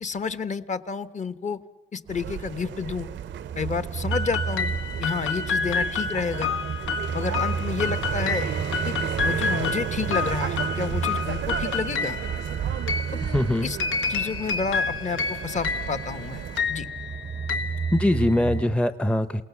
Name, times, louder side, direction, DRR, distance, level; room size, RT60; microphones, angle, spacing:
voice 1, 0.0-1.6 1.9-3.1 3.6-4.7 5.0-6.5 7.1-8.5 8.8-12.2 13.1-13.2 13.6-13.8 14.1-16.4 16.7-16.9, left 5 dB, 35° left, 13 dB, 1.1 m, -30 dB
sound 1, 2.1-18.8, right 6 dB, 30° right, 0.7 m, -33 dB
sound 2, 2.1-16.6, right 10 dB, 65° right, 0.7 m, -34 dB
sound 3, 4.1-18.6, left 5 dB, 80° left, 1.4 m, -30 dB
voice 2, 13.2-13.7 17.9-19.4, left 1 dB, 5° left, 12 dB, 0.8 m, -22 dB
28.5 x 18.0 x 7.1 m, 1.1 s
cardioid pair, 90°, 20 cm